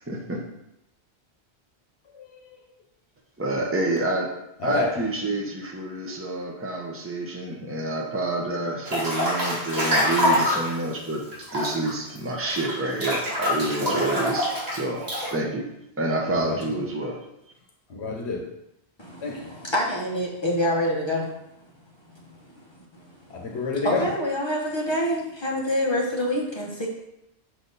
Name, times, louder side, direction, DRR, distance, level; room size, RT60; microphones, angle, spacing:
voice 1, 0.1-0.4 3.4-4.3 4.6-11.2 11.5-15.0 15.3-15.7 16.0-17.2, right 2 dB, 15° right, -1 dB, 0.8 m, -28 dB
voice 2, 2.1-2.6 4.6-5.0 13.8-14.1 16.3-16.9 17.9-18.5 19.2-19.5 23.3-24.1, left 3 dB, 80° left, 1 dB, 1.1 m, -29 dB
Breathing / Bathtub (filling or washing) / Splash splatter, 8.9-10.8 11.3-15.3, equal, 40° right, 2.3 m, -25 dB
voice 3, 19.0-21.3 22.1-22.2 23.8-26.9, equal, 25° left, -3 dB, 1.0 m, -26 dB
6.2 x 3.9 x 4.0 m, 0.82 s
omnidirectional pair, 1.1 m